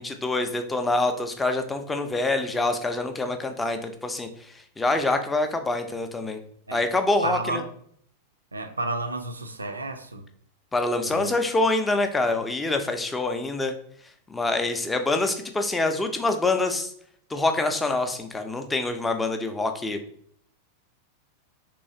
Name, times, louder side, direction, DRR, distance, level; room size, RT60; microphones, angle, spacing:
voice 1, 0.0-4.3 4.8-6.4 6.7-7.6 10.7-13.7 14.3-16.9 17.3-20.0, left 2 dB, 10° left, 0.4 m, -25 dB
voice 2, 7.2-7.6 8.5-10.3 11.0-11.4, right 2 dB, 80° right, 0.4 m, -31 dB
3.4 x 3.0 x 2.6 m
figure-of-eight pair, 90°, 0 cm